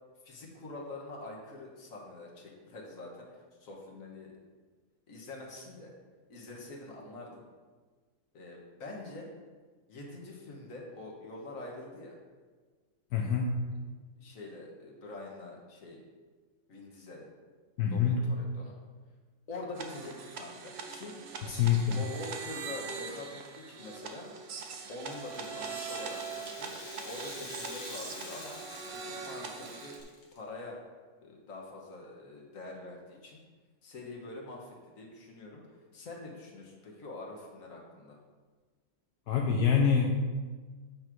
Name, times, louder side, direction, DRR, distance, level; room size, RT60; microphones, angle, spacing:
voice 1, 0.2-3.3 3.6-4.3 5.1-5.9 6.3-7.5 8.3-9.3 9.9-12.2 14.2-16.0 16.7-17.3 17.9-18.7 19.5-21.2 21.9-24.3 24.9-26.7 27.0-28.6 28.9-30.0 30.3-30.8 31.2-33.4 33.8-38.2, left 2 dB, 60° left, -1 dB, 1.7 m, -45 dB
voice 2, 13.1-13.5 17.8-18.2 21.5-22.0 39.3-40.1, left 7 dB, 80° left, -1 dB, 1.2 m, -26 dB
sound 1, 19.7-30.0, right 5 dB, 55° right, 0.8 m, -42 dB
Rattle (instrument), 24.9-30.4, left 2 dB, 35° left, 1.2 m, -47 dB
8.7 x 3.2 x 6.0 m, 1.4 s
omnidirectional pair, 1.7 m